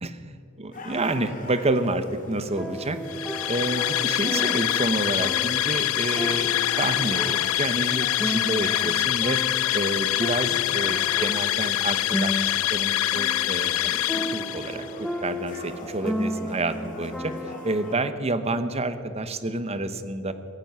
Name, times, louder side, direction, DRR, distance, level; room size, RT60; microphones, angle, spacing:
voice 1, 0.0-3.0 3.5-6.5 6.8-9.4 9.7-14.0 14.3-17.3 17.6-20.3, right 2 dB, 30° right, 11 dB, 0.9 m, -29 dB
sound 1, 0.7-18.0, left 1 dB, 40° left, 2.4 m, -41 dB
sound 2, 2.6-18.1, equal, ahead, 0.8 m, -34 dB
sound 3, 3.1-14.9, left 15 dB, 80° left, 0.4 m, -25 dB
17.0 x 15.0 x 5.6 m, 2.7 s
head